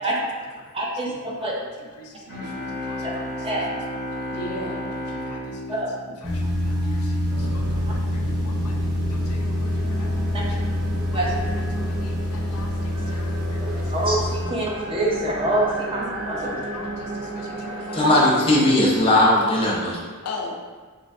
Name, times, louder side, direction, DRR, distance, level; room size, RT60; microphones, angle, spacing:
voice 1, 0.7-1.5 3.0-3.1 3.4-3.7 5.7-5.9 10.3-10.4 11.1-11.3 13.6-16.8 18.0-18.2, right 1 dB, 25° right, -3 dB, 0.5 m, -26 dB
voice 2, 1.8-3.8 4.1-5.8 6.1-10.6 11.1-13.9 14.5-14.6 16.1-18.0 20.1-20.5, left 2 dB, 85° left, 1 dB, 0.5 m, -41 dB
sound 1, 2.3-7.0, left 1 dB, 55° right, 1.0 m, -33 dB
sound 2, 6.2-14.4, left 1 dB, 5° right, 0.8 m, -26 dB
sound 3, 7.3-19.6, right 1 dB, 70° right, 1.2 m, -34 dB
voice 3, 17.9-20.0, left 1 dB, 25° left, -4 dB, 0.7 m, -18 dB
3.2 x 2.9 x 2.6 m, 1.4 s
head